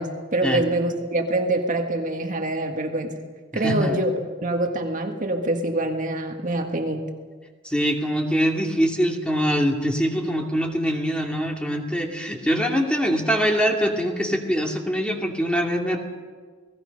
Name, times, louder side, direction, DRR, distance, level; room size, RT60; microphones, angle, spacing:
voice 1, 0.0-3.1 3.5-7.1, right 1 dB, 40° right, 3 dB, 1.8 m, -25 dB
voice 2, 3.6-4.0 7.6-16.0, equal, 5° left, 1 dB, 2.5 m, -23 dB
29.5 x 19.0 x 5.4 m, 1.5 s
head